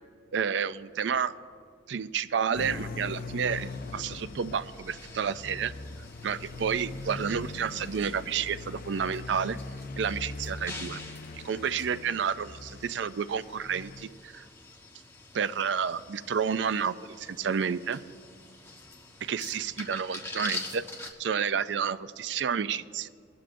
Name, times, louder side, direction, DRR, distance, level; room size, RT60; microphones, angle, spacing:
voice 1, 0.3-1.3 1.9-5.7 6.2-9.6 10.0-11.0 11.3-14.5 15.3-18.0 19.2-23.1, right 7 dB, 70° right, 14 dB, 0.4 m, -30 dB
sound 1, 2.5-14.1, left 3 dB, 50° left, 0.4 m, -41 dB
sound 2, 3.5-21.1, left 3 dB, 15° left, 1.1 m, -46 dB
21.5 x 12.0 x 2.6 m, 2.3 s
head